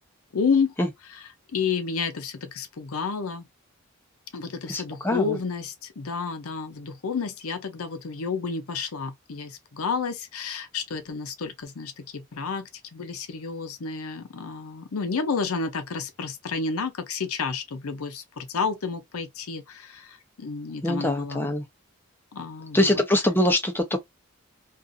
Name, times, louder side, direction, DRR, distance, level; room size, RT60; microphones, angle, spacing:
voice 1, 0.3-0.7 1.5-3.5 4.3-21.5 22.3-23.0, left 5 dB, 85° left, 0.6 m, -30 dB
voice 2, 4.7-5.4 20.8-21.6 22.7-24.0, left 1 dB, 10° left, 0.6 m, -23 dB
2.5 x 2.5 x 2.4 m
head